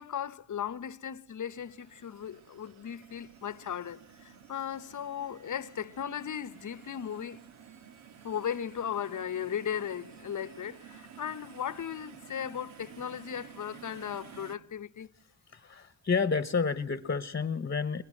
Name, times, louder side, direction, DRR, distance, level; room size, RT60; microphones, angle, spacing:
voice 1, 0.0-7.4 8.2-15.1, left 9 dB, 40° left, 1.0 m, -37 dB
sound 1, 1.5-14.6, right 8 dB, 85° right, 2.0 m, -52 dB
voice 2, 15.5-18.0, left 5 dB, 25° left, 1.1 m, -30 dB
29.0 x 22.0 x 7.8 m
cardioid pair, 90°, 47 cm